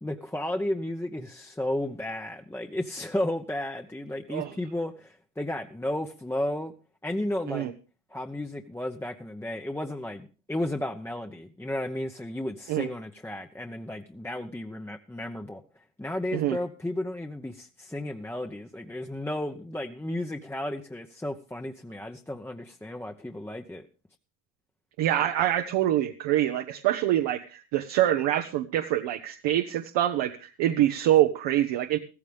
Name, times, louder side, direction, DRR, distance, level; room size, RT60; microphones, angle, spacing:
voice 1, 0.0-6.7 7.0-7.7 8.1-15.6 16.0-23.9, left 1 dB, 5° left, 3 dB, 0.8 m, -33 dB
voice 2, 25.0-32.0, right 12 dB, 70° right, 6 dB, 1.1 m, -25 dB
14.5 x 14.5 x 3.5 m, 0.35 s
supercardioid pair, 90°, 45 cm